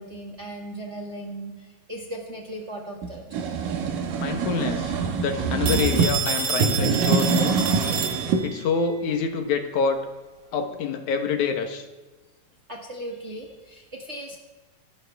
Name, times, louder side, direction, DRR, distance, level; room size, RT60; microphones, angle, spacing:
voice 1, 0.0-3.4 12.7-14.4, right 1 dB, 25° right, -1 dB, 1.8 m, -37 dB
sound 1, 3.0-6.1 6.5-8.4, right 5 dB, 80° right, 3.1 m, -24 dB
voice 2, 4.2-7.6 8.4-10.1 10.5-11.9, left 5 dB, 70° left, 6 dB, 2.5 m, -26 dB
Telephone, 5.7-8.7, right 6 dB, 50° right, 2.1 m, -28 dB
25.5 x 13.0 x 3.5 m, 1.2 s
omnidirectional pair, 3.8 m